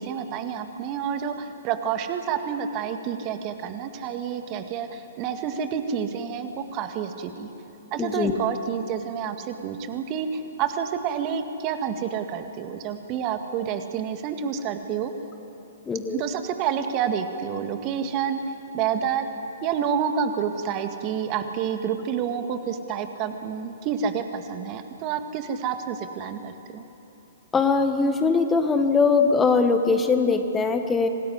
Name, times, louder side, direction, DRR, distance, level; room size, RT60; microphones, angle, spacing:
voice 1, 0.0-7.5 7.9-15.1 16.1-18.4 18.7-19.3 19.6-26.8, right 7 dB, 35° right, 7 dB, 1.9 m, -29 dB
voice 2, 8.0-8.4 15.9-16.2 27.5-31.1, left 4 dB, 15° left, 6 dB, 1.6 m, -21 dB
26.0 x 19.5 x 9.9 m, 2.8 s
figure-of-eight pair, 115°, 0 cm